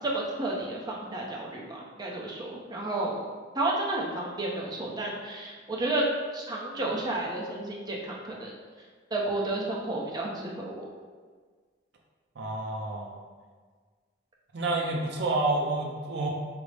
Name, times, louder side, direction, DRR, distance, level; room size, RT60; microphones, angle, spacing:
voice 1, 0.0-3.2 3.5-6.0 6.3-8.5 9.1-10.9, right 2 dB, 25° right, -2 dB, 0.6 m, -31 dB
voice 2, 12.4-13.1 14.5-16.3, right 2 dB, 65° right, 0 dB, 0.5 m, -29 dB
5.0 x 2.0 x 3.2 m, 1.5 s
head